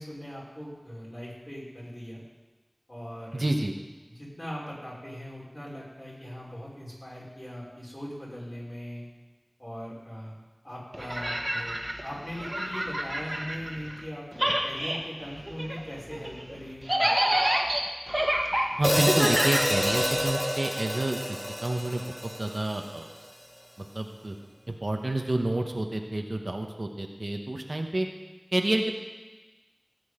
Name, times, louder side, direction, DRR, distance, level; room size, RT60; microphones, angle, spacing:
voice 1, 0.0-2.2 2.9-3.5 4.1-9.0 9.6-10.3 10.6-17.4, equal, 35° left, -5 dB, 5.5 m, -40 dB
voice 2, 3.3-3.7 18.8-23.1 23.9-24.3 24.7-28.1 28.5-28.9, right 1 dB, 75° right, 3 dB, 1.2 m, -29 dB
sound 1, 10.9-14.1 14.3-20.3, right 1 dB, 40° right, 1.6 m, -28 dB
Hi-hat, 18.8-23.1, equal, 5° left, 0.6 m, -28 dB
17.5 x 8.1 x 5.2 m, 1.2 s
wide cardioid pair, 40°, 0 cm